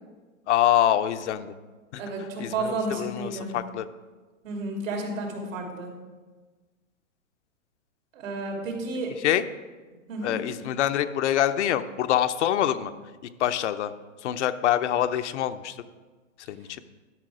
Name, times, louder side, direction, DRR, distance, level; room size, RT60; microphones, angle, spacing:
voice 1, 0.5-1.5 1.9-2.0 2.4-3.9 9.2-9.4 10.2-12.9 13.4-13.9 14.2-15.8 16.5-16.8, left 11 dB, 60° left, 10 dB, 0.6 m, -25 dB
voice 2, 2.0-3.5 4.4-5.9 8.1-9.1 10.1-10.4, right 2 dB, 75° right, 0 dB, 2.9 m, -31 dB
12.0 x 5.9 x 4.9 m, 1.3 s
hypercardioid pair, 135°, 39 cm